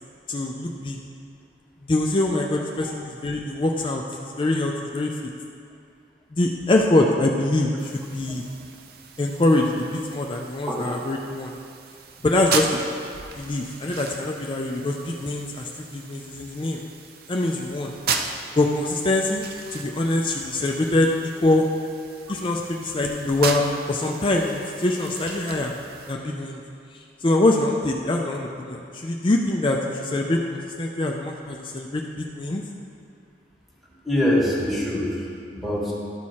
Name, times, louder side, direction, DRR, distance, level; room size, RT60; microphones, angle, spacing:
voice 1, 0.3-1.0 1.8-5.1 6.3-8.4 9.2-11.5 12.2-12.8 13.3-16.8 17.3-17.9 18.6-19.4 19.7-21.1 21.4-21.7 22.3-25.7 26.1-26.6 26.9-32.6, left 2 dB, 30° left, 1 dB, 0.4 m, -24 dB
sound 1, 7.8-26.1, right 5 dB, 55° right, 0.6 m, -36 dB
voice 2, 33.8-35.9, left 1 dB, ahead, -6 dB, 1.6 m, -24 dB
12.5 x 4.6 x 4.2 m, 2.4 s
head